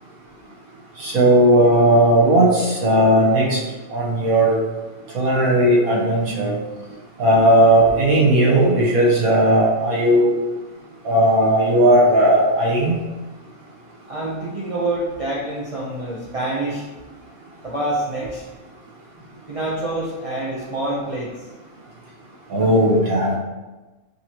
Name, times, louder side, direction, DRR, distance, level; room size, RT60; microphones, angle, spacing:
voice 1, 1.0-3.6 3.9-4.6 5.1-6.5 7.2-10.3 11.0-12.9 22.5-23.4, right 1 dB, 80° right, -4 dB, 1.6 m, -16 dB
voice 2, 14.1-16.8 17.6-18.4 19.5-21.3, right 1 dB, 40° right, -5 dB, 0.5 m, -26 dB
5.6 x 3.0 x 2.8 m, 1.1 s
omnidirectional pair, 1.5 m